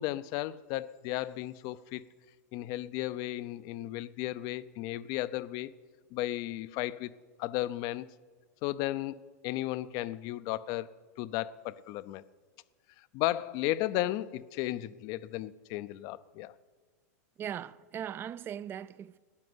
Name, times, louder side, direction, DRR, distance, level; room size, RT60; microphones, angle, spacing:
voice 1, 0.0-2.0 2.5-5.7 6.1-7.1 7.4-8.1 8.6-12.2 13.0-16.5, left 15 dB, 45° left, 0.6 m, -34 dB
voice 2, 17.4-19.2, right 9 dB, 25° right, 0.4 m, -39 dB
13.0 x 9.2 x 9.5 m
supercardioid pair, 130°, 9 cm